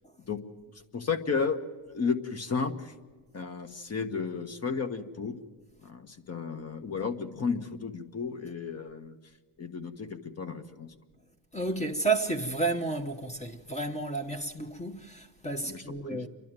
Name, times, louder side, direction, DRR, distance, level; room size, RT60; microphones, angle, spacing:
voice 1, 0.9-1.6 1.9-2.9 3.3-5.4 5.8-9.2 9.6-10.9 15.6-16.2, left 5 dB, 30° left, 1.5 m, -33 dB
voice 2, 11.5-16.3, right 3 dB, 15° left, 1.2 m, -31 dB
28.5 x 12.0 x 9.0 m
cardioid pair, 115°, 47 cm